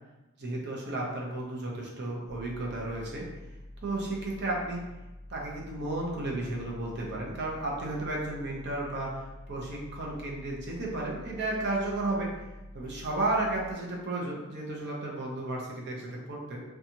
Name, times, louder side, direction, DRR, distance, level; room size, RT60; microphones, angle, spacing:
voice 1, 0.4-3.3 3.8-4.8 5.3-12.3 12.7-16.6, right 2 dB, 55° right, -3 dB, 0.6 m, -33 dB
sound 1, 2.3-13.7, left 1 dB, 20° right, 1.5 m, -47 dB
2.6 x 2.3 x 2.7 m, 1.0 s
head